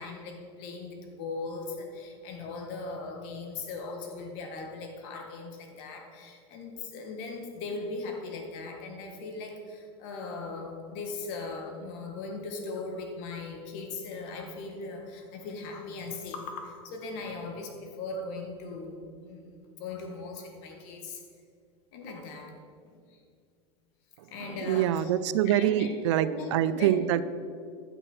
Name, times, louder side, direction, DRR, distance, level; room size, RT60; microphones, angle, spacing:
voice 1, 0.0-19.0 19.3-21.2 21.9-22.5 22.8-23.2 24.3-25.1 25.5-25.9 26.2-27.0, left 3 dB, 55° left, 3 dB, 1.7 m, -39 dB
voice 2, 24.2-27.2, right 11 dB, 80° right, 15 dB, 0.5 m, -26 dB
8.9 x 5.9 x 6.3 m, 2.2 s
supercardioid pair, 145°, 15 cm